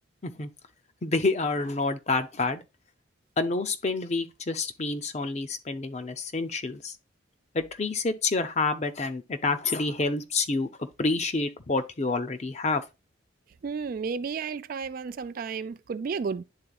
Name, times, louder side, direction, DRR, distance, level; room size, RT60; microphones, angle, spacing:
voice 1, 1.0-2.6 3.4-6.9 7.5-12.8, left 3 dB, 35° left, 0.6 m, -28 dB
voice 2, 13.6-16.4, right 5 dB, 45° right, 0.3 m, -32 dB
10.5 x 3.9 x 2.3 m
head